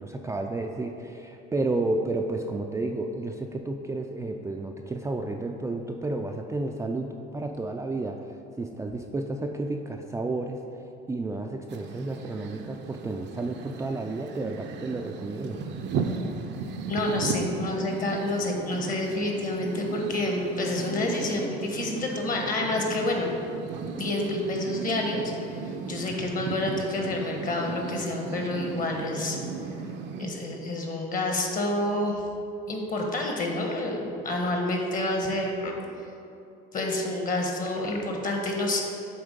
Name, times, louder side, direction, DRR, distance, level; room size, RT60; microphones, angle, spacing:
voice 1, 0.0-15.6, right 2 dB, 15° right, 2 dB, 0.3 m, -31 dB
sound 1, 11.7-30.3, right 5 dB, 60° right, 0.6 m, -36 dB
voice 2, 16.9-23.3 23.9-29.4 30.2-32.2 32.7-35.7 36.7-38.8, left 1 dB, 40° left, 1 dB, 1.2 m, -28 dB
7.0 x 3.6 x 5.1 m, 2.7 s
supercardioid pair, 85°, 20 cm